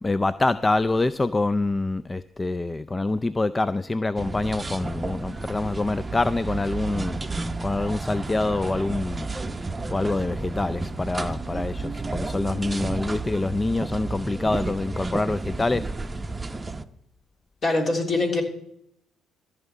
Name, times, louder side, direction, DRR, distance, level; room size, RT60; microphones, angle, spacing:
voice 1, 0.0-7.2 7.6-9.3 9.9-15.8, left 2 dB, 20° left, 15 dB, 0.4 m, -26 dB
sound 1, 4.2-16.8, right 3 dB, 20° right, 0.7 m, -32 dB
voice 2, 17.6-18.4, left 2 dB, 50° left, 1 dB, 3.4 m, -23 dB
14.5 x 5.6 x 8.2 m, 0.76 s
hypercardioid pair, 50°, 0 cm